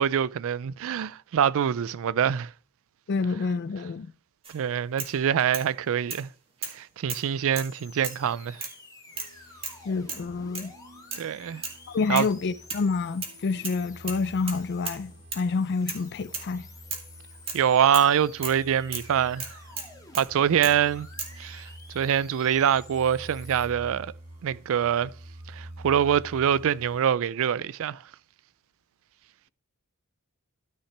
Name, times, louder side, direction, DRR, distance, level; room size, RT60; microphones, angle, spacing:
voice 1, 0.0-2.5 4.5-6.3 6.7-8.6 11.2-11.6 12.1-12.3 17.5-19.5 20.1-21.1 21.4-21.7 21.9-24.1 24.4-25.1 25.5-28.0, right 8 dB, 65° right, 0.4 m, -24 dB
voice 2, 3.1-4.1 9.9-10.7 11.9-16.7, left 4 dB, 50° left, 0.4 m, -28 dB
sound 1, 4.4-4.6 5.0-5.7 6.1-6.3 6.6-6.8 7.1-7.7 8.0-8.3 8.6-8.8 9.2-9.3 9.6-9.8 10.1-10.3 10.5-10.7 11.1-11.3 11.6-11.8 12.2-12.3 12.7-13.4 13.6-13.8 14.1-15.0 15.3-15.5 15.9-16.1 16.3-16.5 16.9-17.1 17.5-17.6 17.9-18.1 18.4-18.6 18.9-19.1 19.4-20.3 20.6-20.8 21.2-21.4, right 4 dB, 25° right, 1.8 m, -36 dB
sound 2, 7.5-23.7, left 4 dB, 15° left, 1.6 m, -51 dB
sound 3, 9.1-27.1, right 1 dB, 85° right, 2.3 m, -48 dB
12.5 x 5.7 x 3.3 m
head